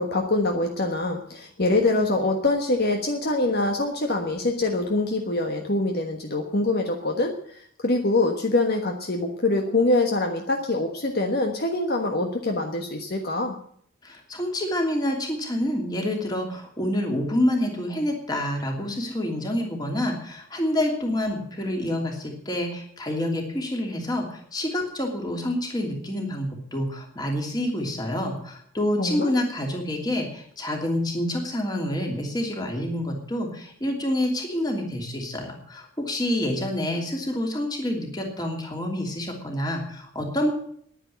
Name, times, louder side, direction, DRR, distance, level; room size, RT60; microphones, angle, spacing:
voice 1, 0.0-13.5 29.0-29.3, left 2 dB, 50° left, 3 dB, 1.4 m, -24 dB
voice 2, 14.0-40.5, left 1 dB, 20° left, 1 dB, 2.9 m, -27 dB
10.5 x 10.0 x 9.3 m, 0.64 s
head